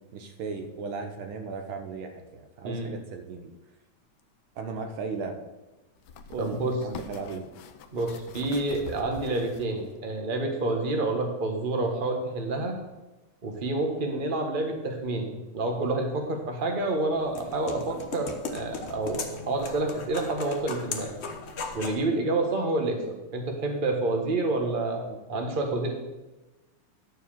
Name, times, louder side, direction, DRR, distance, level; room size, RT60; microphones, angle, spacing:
voice 1, 0.1-3.5 4.5-5.4 6.3-7.5 25.1-25.2, right 4 dB, 75° right, 6 dB, 1.7 m, -36 dB
sound 1, 4.2-4.3 6.0-10.0 10.6-10.7, left 5 dB, 65° left, 1.1 m, -45 dB
voice 2, 6.4-6.8 7.9-12.8 13.4-19.2 19.5-21.1 21.7-25.0 25.3-25.9, right 2 dB, 25° right, 2 dB, 1.4 m, -28 dB
sound 2, 16.8-22.1, left 4 dB, 50° left, 0.8 m, -38 dB
11.0 x 4.7 x 7.2 m, 1.1 s
omnidirectional pair, 2.4 m